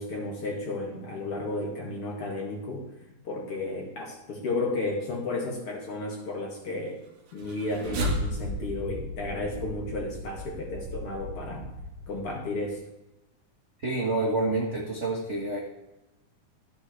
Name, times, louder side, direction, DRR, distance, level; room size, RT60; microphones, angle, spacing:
voice 1, 0.0-2.9 3.2-7.0 7.3-11.7 12.1-12.8, left 2 dB, 50° left, -1 dB, 2.9 m, -33 dB
sound 1, 7.3-12.6, equal, 70° right, 2.9 m, -35 dB
voice 2, 13.8-15.6, right 2 dB, 45° right, -2 dB, 0.9 m, -28 dB
14.0 x 8.4 x 3.3 m, 0.97 s
omnidirectional pair, 3.6 m